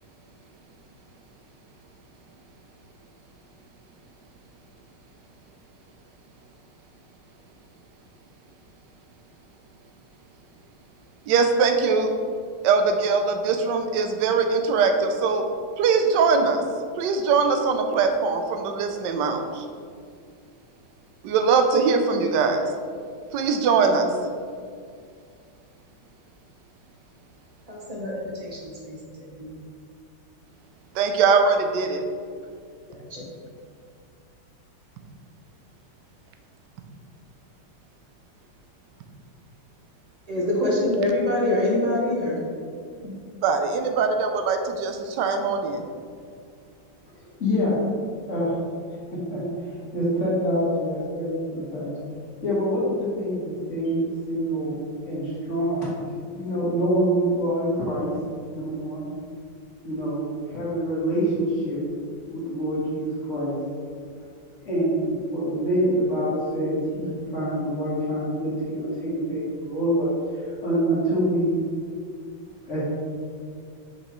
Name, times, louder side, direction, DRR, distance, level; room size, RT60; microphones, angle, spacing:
voice 1, 11.3-12.1 12.6-15.4 15.8-16.6 17.0-19.7 21.2-22.6 23.3-24.1 30.9-32.0 43.4-45.9, right 5 dB, 75° right, 5 dB, 1.1 m, -21 dB
voice 2, 27.7-29.5 32.9-33.3 40.3-42.4 43.0-43.1, left 1 dB, 50° right, -4 dB, 0.4 m, -26 dB
voice 3, 47.2-47.8 48.3-48.5 49.1-51.9 52.4-54.0 54.3-54.7 55.1-56.1 56.3-58.1 58.5-59.1 59.8-60.2 60.5-61.8 62.3-63.6 64.6-70.1 70.6-71.5 72.7-72.8, equal, 40° left, -7 dB, 1.7 m, -26 dB
6.1 x 5.2 x 3.0 m, 2.2 s
omnidirectional pair, 2.3 m